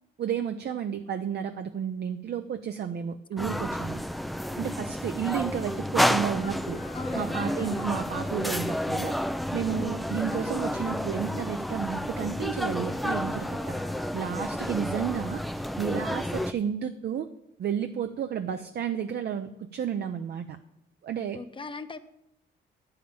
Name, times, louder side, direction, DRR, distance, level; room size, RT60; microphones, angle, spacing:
voice 1, 0.2-4.0 4.6-6.8 7.1-9.1 9.5-13.7 14.1-15.4 15.8-17.3 17.6-20.6 21.0-21.4, right 8 dB, 55° right, 8 dB, 0.7 m, -32 dB
sound 1, 3.4-16.5, equal, ahead, 0.4 m, -30 dB
sound 2, 6.1-14.1, left 8 dB, 75° left, 1.1 m, -52 dB
voice 2, 6.9-8.0 9.7-10.0 21.3-22.0, left 3 dB, 25° left, 10 dB, 0.8 m, -38 dB
10.5 x 5.8 x 8.6 m, 0.82 s
cardioid pair, 90°, 20 cm